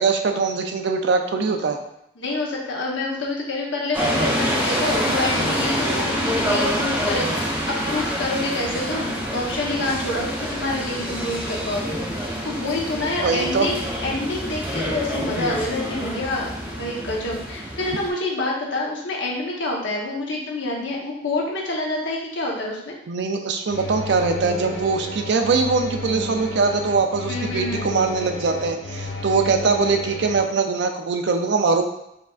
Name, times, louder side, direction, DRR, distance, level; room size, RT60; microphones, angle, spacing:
voice 1, 0.0-1.8 13.2-13.7 23.1-31.8, right 4 dB, 55° right, 5 dB, 0.4 m, -22 dB
voice 2, 2.2-12.0 12.4-23.0 27.3-27.9 29.4-29.5, left 2 dB, 60° left, -2 dB, 0.9 m, -27 dB
sound 1, 3.9-18.1, equal, 10° right, 0.7 m, -26 dB
sound 2, 23.7-30.4, left 1 dB, 80° left, 1.1 m, -32 dB
4.8 x 3.4 x 2.4 m, 0.80 s
head